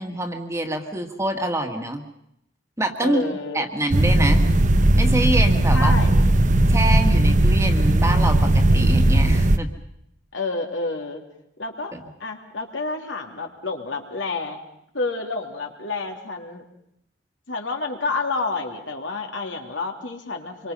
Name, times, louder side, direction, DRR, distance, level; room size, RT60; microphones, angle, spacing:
voice 1, 0.0-2.1 2.8-3.2 3.5-4.4 4.9-5.9 6.7-9.7 11.9-12.0, right 1 dB, 15° right, 4 dB, 1.8 m, -26 dB
voice 2, 3.0-3.7 5.7-6.3 10.3-11.2 11.6-11.9 12.2-14.6 14.9-16.6 17.5-20.7, left 3 dB, 80° left, 2 dB, 2.9 m, -29 dB
sound 1, 3.9-9.6, right 1 dB, 40° right, 0.9 m, -17 dB
26.5 x 24.0 x 5.5 m, 0.76 s
head